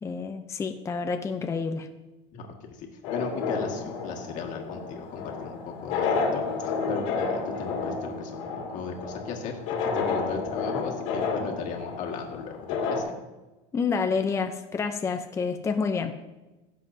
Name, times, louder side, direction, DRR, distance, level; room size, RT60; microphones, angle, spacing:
voice 1, 0.0-1.9 13.7-16.1, left 5 dB, 15° left, 6 dB, 0.6 m, -28 dB
voice 2, 2.3-9.5 9.8-13.1, left 5 dB, 50° left, 1 dB, 1.9 m, -36 dB
sound 1, 3.0-13.0, left 4 dB, 80° left, 2.3 m, -31 dB
16.0 x 7.6 x 2.7 m, 1.1 s
supercardioid pair, 130°, 16 cm